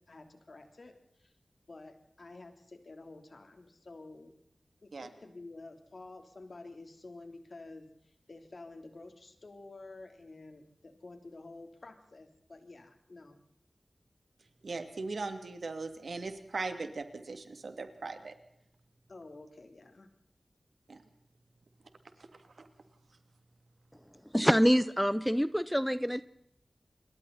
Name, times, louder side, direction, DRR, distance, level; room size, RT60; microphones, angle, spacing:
voice 1, 0.1-1.3 1.7-4.3 4.8-13.4 19.1-20.1, left 2 dB, 65° left, 5 dB, 3.5 m, -50 dB
voice 2, 14.6-18.3 20.9-21.0 22.2-22.7, right 3 dB, 80° right, 7 dB, 2.6 m, -39 dB
voice 3, 24.3-26.2, equal, ahead, 14 dB, 0.8 m, -26 dB
28.5 x 22.5 x 4.2 m, 0.74 s
cardioid pair, 45°, 0 cm